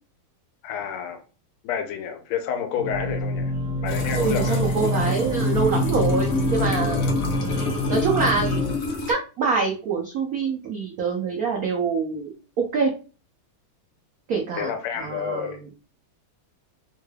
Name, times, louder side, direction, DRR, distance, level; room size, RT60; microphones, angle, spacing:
voice 1, 0.6-1.2 1.6-3.5 3.8-4.6 7.0-7.1 14.5-15.6, left 8 dB, 85° left, 1.5 m, -29 dB
sound 1, 2.8-8.8, left 1 dB, 65° right, 1.3 m, -26 dB
sound 2, 3.9-9.1, left 3 dB, 60° left, 0.9 m, -29 dB
voice 2, 4.2-7.0 7.9-8.5 9.1-12.9 14.3-15.7, right 5 dB, 85° right, 0.7 m, -25 dB
3.7 x 2.2 x 3.2 m
omnidirectional pair, 2.3 m